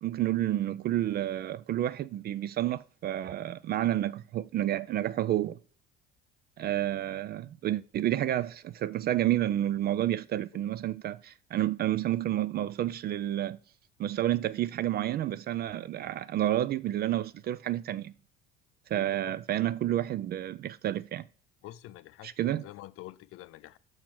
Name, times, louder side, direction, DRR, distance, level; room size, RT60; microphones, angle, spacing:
voice 1, 0.0-5.6 6.6-13.6 14.0-18.1 18.9-21.2 22.2-22.7, right 13 dB, 35° right, 0.4 m, -30 dB
voice 2, 21.6-23.8, left 15 dB, 50° left, 0.6 m, -47 dB
6.0 x 4.5 x 6.1 m
figure-of-eight pair, 60°, 30 cm